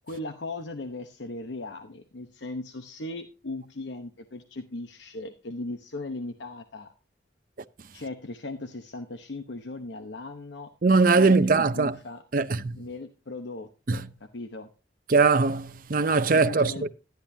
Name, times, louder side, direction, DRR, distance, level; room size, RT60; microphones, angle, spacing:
voice 1, 0.0-6.9 7.9-10.7 11.1-12.2 12.7-14.7 16.3-16.9, left 2 dB, 80° left, 0.9 m, -38 dB
voice 2, 10.8-11.9 12.3-12.8 13.9-14.0 15.1-16.9, right 4 dB, 50° right, 0.6 m, -21 dB
12.0 x 10.5 x 2.7 m
head